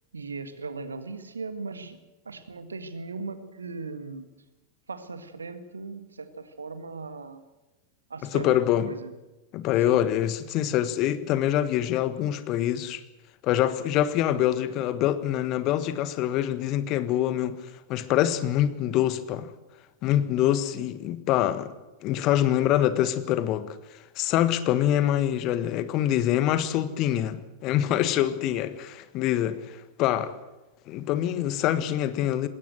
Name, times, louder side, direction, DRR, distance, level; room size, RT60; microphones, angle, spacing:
voice 1, 0.1-2.0 2.3-4.3 4.9-7.4 8.1-8.6 8.9-9.1 9.8-10.0, right 4 dB, 75° right, 1.8 m, -38 dB
voice 2, 8.3-8.9 9.5-13.0 13.4-17.6 17.9-19.5 20.0-21.7 22.0-23.6 24.1-30.3 30.9-32.5, left 12 dB, 40° left, 1.5 m, -25 dB
20.0 x 17.5 x 7.7 m
figure-of-eight pair, 90°, 0 cm